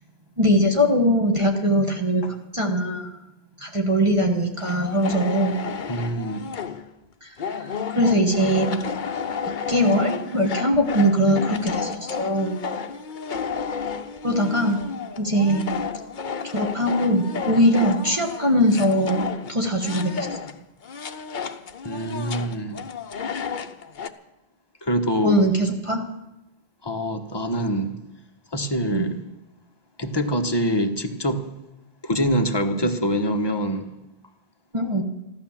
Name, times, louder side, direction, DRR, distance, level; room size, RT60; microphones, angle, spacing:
voice 1, 0.4-2.2 2.5-3.1 3.6-5.6 7.2-7.3 7.9-8.8 9.7-12.6 14.2-14.8 15.2-15.8 16.5-20.3 25.2-26.0 28.9-29.1 32.8-32.9 34.7-35.0, equal, 30° right, 1.5 m, -21 dB
sound 1, 4.6-6.9 7.4-20.6 20.8-24.1, left 6 dB, 55° left, 0.9 m, -32 dB
voice 2, 5.9-6.4 21.8-22.8 24.8-25.5 26.8-28.0 28.5-29.2 30.0-31.5 32.0-33.9, equal, 25° left, 1.2 m, -25 dB
14.5 x 12.0 x 7.3 m
omnidirectional pair, 1.1 m